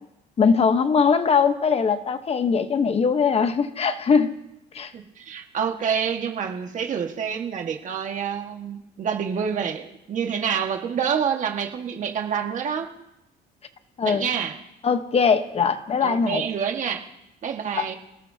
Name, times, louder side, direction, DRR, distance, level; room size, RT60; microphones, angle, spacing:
voice 1, 0.4-4.3 4.7-4.9 14.0-14.3 14.8-16.5 17.7-17.9, left 5 dB, 35° left, 9 dB, 1.1 m, -21 dB
voice 2, 4.9-12.9 14.0-14.6 16.0-17.0 17.4-18.0, right 7 dB, 50° right, 3 dB, 1.7 m, -27 dB
27.5 x 18.0 x 2.8 m, 0.87 s
cardioid pair, 110°, 17 cm